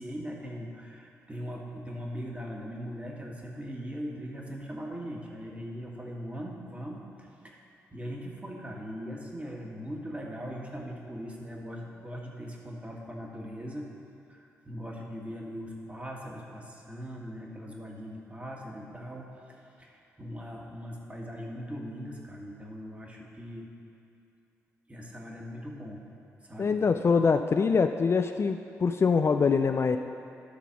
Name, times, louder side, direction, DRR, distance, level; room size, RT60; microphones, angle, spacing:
voice 1, 0.0-7.6 7.9-13.9 14.3-23.7 24.9-26.0 26.4-26.8, equal, 20° right, -1 dB, 1.8 m, -40 dB
voice 2, 26.6-30.0, left 5 dB, 40° left, 7 dB, 0.4 m, -24 dB
11.5 x 4.0 x 5.8 m, 2.8 s
hypercardioid pair, 40°, 7 cm